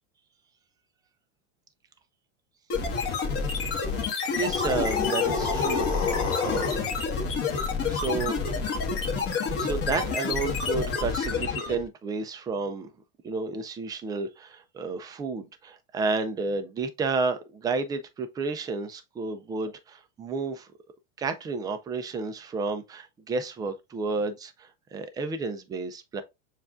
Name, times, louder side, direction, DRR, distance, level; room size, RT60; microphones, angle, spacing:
sound 1, 2.7-11.9, left 5 dB, 40° left, 1.4 m, -29 dB
sound 2, 4.3-6.9, left 6 dB, 65° left, 1.3 m, -29 dB
voice 1, 4.4-6.2 6.4-6.7 7.9-8.4 9.6-12.9 13.2-20.7 21.2-26.2, right 4 dB, 10° right, 0.3 m, -31 dB
6.8 x 2.4 x 2.4 m
supercardioid pair, 135°, 36 cm